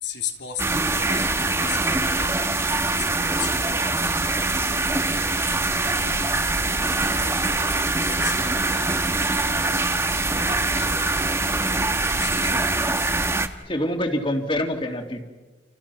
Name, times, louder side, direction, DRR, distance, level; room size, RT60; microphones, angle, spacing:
voice 1, 0.0-6.5 7.1-9.0 10.1-11.1 11.7-12.9, left 7 dB, 85° left, 3 dB, 3.6 m, -37 dB
sound 1, 0.6-13.5, right 2 dB, 15° right, 1.3 m, -23 dB
voice 2, 13.6-15.2, left 1 dB, 30° left, 4 dB, 2.9 m, -25 dB
29.5 x 29.0 x 5.9 m, 1.3 s
head